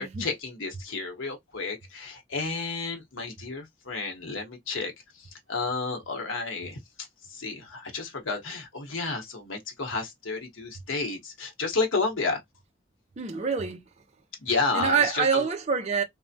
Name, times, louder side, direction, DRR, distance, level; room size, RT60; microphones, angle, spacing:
voice 1, 0.0-12.4 14.4-15.5, left 3 dB, 80° left, 0.8 m, -31 dB
voice 2, 13.2-13.9 14.7-16.0, right 5 dB, 35° right, 0.4 m, -26 dB
3.2 x 2.0 x 2.6 m
head